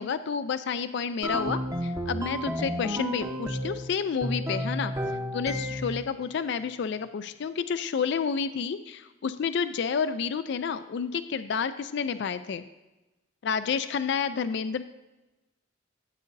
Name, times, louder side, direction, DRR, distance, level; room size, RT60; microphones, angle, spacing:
voice 1, 0.0-4.9 5.3-12.6 13.4-14.8, left 6 dB, 60° left, 12 dB, 0.4 m, -30 dB
sound 1, 1.2-3.8 4.2-6.1, equal, 15° right, 0.7 m, -31 dB
13.0 x 8.3 x 2.6 m, 1.1 s
head